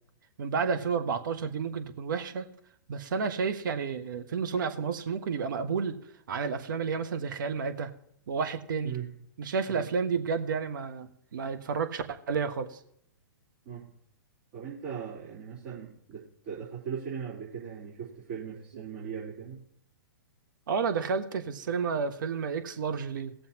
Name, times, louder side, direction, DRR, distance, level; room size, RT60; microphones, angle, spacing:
voice 1, 0.4-2.5 2.9-5.9 6.3-7.9 8.3-8.9 9.4-12.8 18.7-18.8 20.7-23.3, right 5 dB, 60° right, 7 dB, 1.2 m, -31 dB
voice 2, 14.5-19.6, right 7 dB, 45° right, -7 dB, 3.7 m, -39 dB
19.5 x 7.3 x 2.9 m, 0.72 s
figure-of-eight pair, 120°, 12 cm